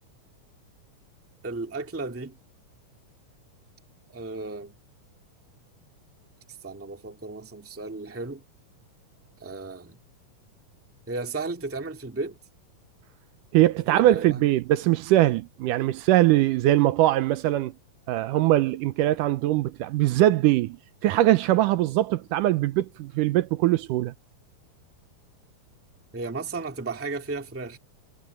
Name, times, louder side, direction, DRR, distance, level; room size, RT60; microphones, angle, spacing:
voice 1, 1.4-2.4 4.1-4.7 6.6-8.4 9.4-10.0 11.1-12.4 13.9-14.4 26.1-27.8, right 3 dB, 5° right, 1.2 m, -34 dB
voice 2, 13.5-17.7 18.1-20.8 21.0-24.1, right 15 dB, 80° right, 2.2 m, -21 dB
omnidirectional pair, 3.9 m